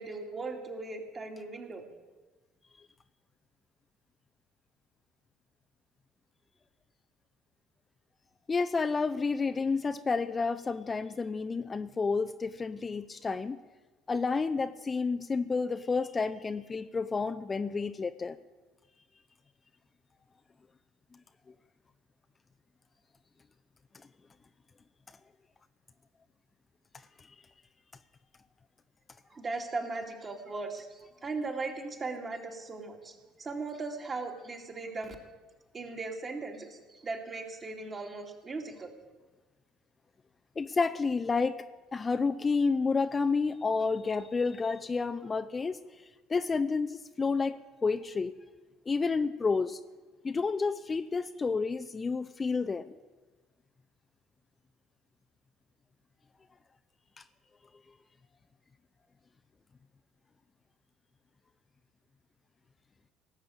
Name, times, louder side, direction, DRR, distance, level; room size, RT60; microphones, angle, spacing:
voice 1, 0.0-1.8 29.3-35.2 35.7-38.9, right 3 dB, 30° right, 2 dB, 2.5 m, -38 dB
voice 2, 8.5-13.6 14.1-18.4 40.6-41.6 41.9-45.8 46.3-48.3 48.9-49.8 50.2-53.0, left 4 dB, 25° left, 9 dB, 0.6 m, -30 dB
18.0 x 7.4 x 8.4 m, 1.3 s
figure-of-eight pair, 60°, 0 cm